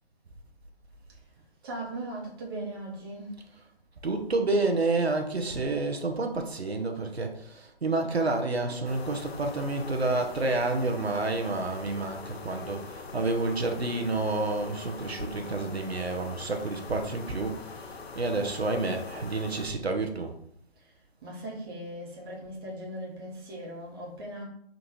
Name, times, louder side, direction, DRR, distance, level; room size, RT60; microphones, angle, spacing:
voice 1, 1.6-3.4 20.8-20.9 21.2-24.4, right 1 dB, 20° right, 0.9 m, -39 dB
voice 2, 4.0-20.4, right 3 dB, 75° right, 0.8 m, -29 dB
sound 1, 8.8-19.7, left 4 dB, 75° left, 0.6 m, -43 dB
3.8 x 2.5 x 4.6 m
figure-of-eight pair, 140°, 31 cm